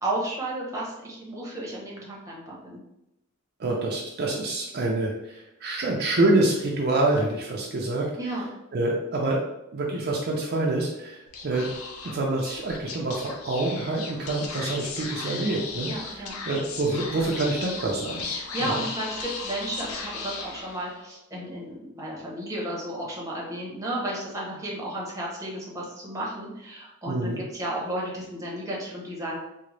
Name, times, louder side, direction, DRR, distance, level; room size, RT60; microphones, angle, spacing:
voice 1, 0.0-2.8 8.2-8.4 15.9-16.3 18.3-29.4, right 1 dB, 15° right, -4 dB, 0.8 m, -33 dB
voice 2, 3.6-8.1 8.7-9.4 9.7-11.7 12.0-18.2 18.6-18.8 27.0-27.4, right 2 dB, 50° right, -2 dB, 0.5 m, -26 dB
Speech / Whispering, 11.3-21.1, left 4 dB, 90° left, 0.5 m, -36 dB
3.7 x 2.1 x 3.2 m, 0.88 s
head